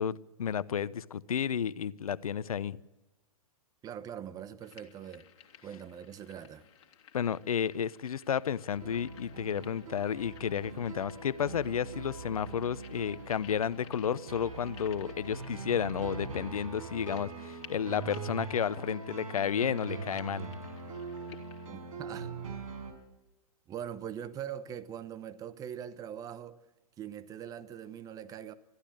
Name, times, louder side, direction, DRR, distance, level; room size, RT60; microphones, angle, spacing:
voice 1, 0.0-2.8 7.1-20.5, left 8 dB, 70° left, 0.8 m, -32 dB
voice 2, 3.8-5.3 5.6-6.7 21.7-22.3 23.7-26.6 27.0-28.5, right 9 dB, 20° right, 1.0 m, -42 dB
sound 1, 4.6-21.7, left 9 dB, 50° left, 2.6 m, -57 dB
sound 2, 8.7-22.9, right 4 dB, 65° right, 5.3 m, -42 dB
21.5 x 14.5 x 8.8 m
figure-of-eight pair, 120°, 19 cm